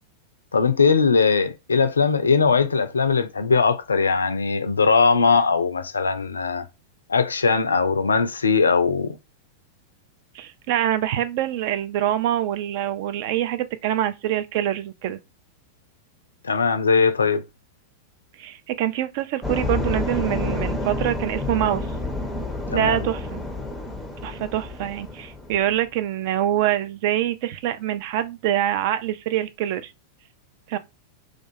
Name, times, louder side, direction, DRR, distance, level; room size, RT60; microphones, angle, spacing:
voice 1, 0.5-6.7 7.1-9.2 16.4-17.4 22.7-23.0, left 5 dB, 75° left, 0.3 m, -20 dB
voice 2, 10.3-15.2 18.3-21.9 22.7-23.4 24.2-29.9 30.7-30.8, right 12 dB, 50° right, 0.3 m, -25 dB
sound 1, 19.4-25.7, left 2 dB, ahead, 0.5 m, -29 dB
2.4 x 2.2 x 2.6 m
figure-of-eight pair, 90°, 0 cm